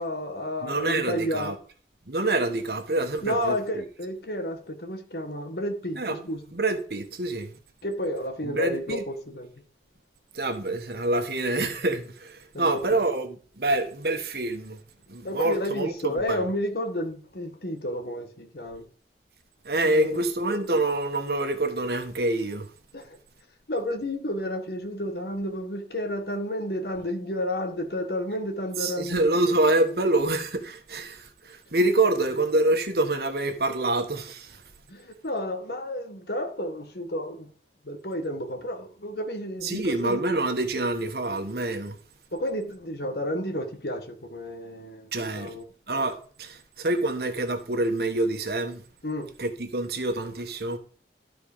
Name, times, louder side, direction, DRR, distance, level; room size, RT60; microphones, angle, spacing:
voice 1, 0.0-1.5 3.2-6.4 7.8-9.5 12.5-13.0 15.2-18.9 19.9-20.2 22.9-23.2 23.7-29.2 34.9-37.5 37.8-40.2 42.3-45.6 49.0-49.3, left 1 dB, 60° left, 1.5 m, -31 dB
voice 2, 0.6-1.6 2.1-3.8 6.0-7.5 8.4-9.0 10.3-14.8 15.1-16.5 19.6-22.7 28.8-34.6 39.6-41.9 45.1-45.5 45.9-48.8 49.4-50.8, right 2 dB, 60° right, 1.4 m, -26 dB
12.5 x 4.7 x 5.0 m
head